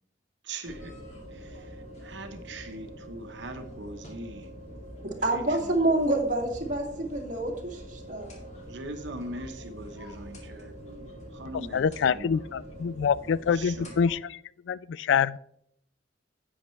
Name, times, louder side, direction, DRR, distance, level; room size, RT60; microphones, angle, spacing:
voice 1, 0.4-1.0 1.3-4.5 5.3-5.7 8.7-12.5 13.5-13.9, right 1 dB, 75° right, 0.9 m, -41 dB
sound 1, 0.6-14.1, equal, 40° left, 2.2 m, -44 dB
voice 2, 5.0-8.3, right 2 dB, 45° right, 2.2 m, -27 dB
voice 3, 11.7-14.4 14.7-15.4, left 7 dB, 80° left, 0.3 m, -26 dB
11.0 x 8.0 x 3.2 m
head